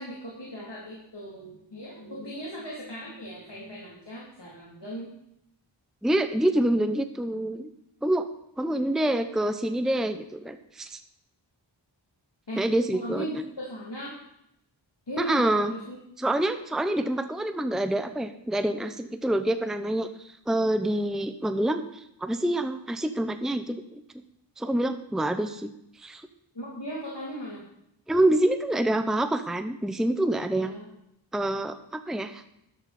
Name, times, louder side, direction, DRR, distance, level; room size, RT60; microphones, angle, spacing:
voice 1, 0.0-5.1 12.5-12.6 12.9-14.1 15.1-16.0 26.5-27.7 30.5-30.9, right 1 dB, 60° left, -5 dB, 3.2 m, -37 dB
voice 2, 6.0-7.7 8.0-8.3 8.6-11.0 12.6-13.3 15.2-15.7 16.2-24.0 24.6-25.7 26.0-26.3 28.1-30.7 31.3-32.5, right 1 dB, ahead, 9 dB, 0.8 m, -26 dB
13.0 x 11.5 x 4.3 m, 0.79 s
wide cardioid pair, 45°, 46 cm